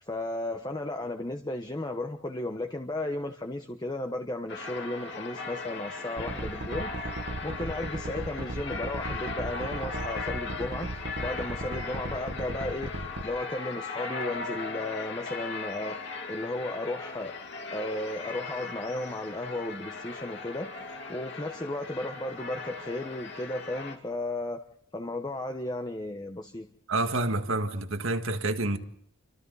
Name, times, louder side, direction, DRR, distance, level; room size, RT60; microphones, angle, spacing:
voice 1, 0.0-7.1 7.4-16.0 16.3-17.3 17.7-20.7 21.1-24.6 24.9-26.7, left 1 dB, 20° left, 1.1 m, -34 dB
sound 1, 4.5-24.0, left 4 dB, 60° left, 3.0 m, -38 dB
sound 2, 6.2-13.3, right 2 dB, 55° right, 1.5 m, -36 dB
voice 2, 26.9-28.8, right 2 dB, 75° right, 1.8 m, -28 dB
30.0 x 25.5 x 4.1 m
head